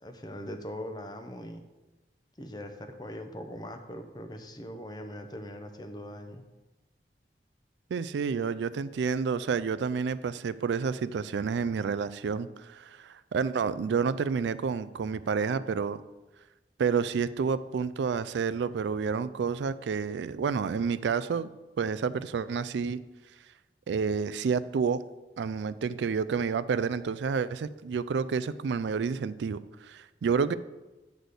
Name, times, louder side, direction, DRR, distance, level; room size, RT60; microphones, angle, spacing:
voice 1, 0.0-1.6 2.4-6.4, equal, 25° left, 6 dB, 0.7 m, -41 dB
voice 2, 7.9-16.0 16.8-21.5 21.8-23.0 23.9-25.0 25.4-30.5, right 5 dB, 85° right, 15 dB, 0.4 m, -29 dB
9.4 x 4.1 x 6.6 m, 1.1 s
head